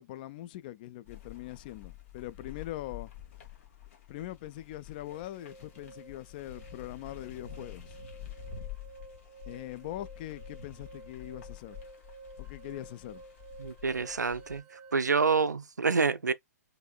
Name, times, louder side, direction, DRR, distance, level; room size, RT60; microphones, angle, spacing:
voice 1, 0.0-3.1 4.1-8.0 9.5-11.8 12.4-13.2, left 14 dB, 30° left, 0.3 m, -42 dB
sound 1, 1.0-14.6, left 9 dB, 45° left, 1.8 m, -48 dB
sound 2, 5.1-14.9, right 4 dB, 15° right, 0.7 m, -52 dB
voice 2, 13.6-14.6 14.9-16.3, right 5 dB, 75° right, 0.4 m, -27 dB
4.7 x 3.1 x 2.4 m
figure-of-eight pair, 120°, 9 cm